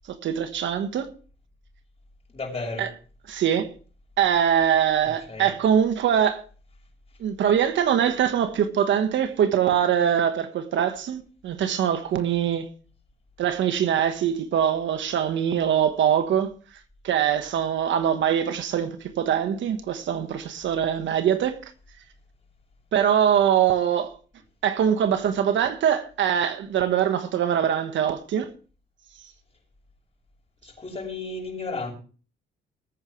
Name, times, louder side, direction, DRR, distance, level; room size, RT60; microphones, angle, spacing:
voice 1, 0.2-1.1 2.8-2.9 3.3-3.7 4.2-6.4 7.2-12.7 13.4-16.5 17.0-21.6 22.9-24.1 24.6-28.5, right 9 dB, 70° right, 1.4 m, -23 dB
voice 2, 2.3-2.9 5.3-5.5 30.6-31.9, left 3 dB, 30° left, 6.5 m, -33 dB
19.5 x 9.0 x 3.2 m
cardioid pair, 90°, 20 cm